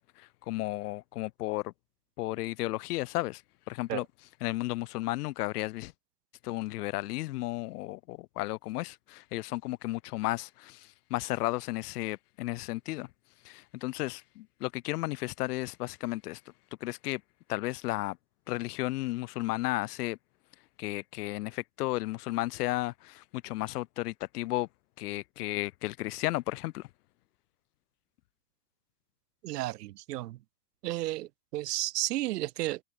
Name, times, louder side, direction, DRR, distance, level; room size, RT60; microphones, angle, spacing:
voice 1, 0.2-1.7 2.2-3.4 3.7-4.0 4.4-5.9 6.4-13.1 13.4-16.4 16.8-17.2 17.5-18.2 18.5-20.2 20.8-24.7 25.0-26.9, left 18 dB, 75° left, 1.7 m, -33 dB
voice 2, 29.4-30.4 30.8-32.8, right 16 dB, 80° right, 2.2 m, -33 dB
hypercardioid pair, 110°, 47 cm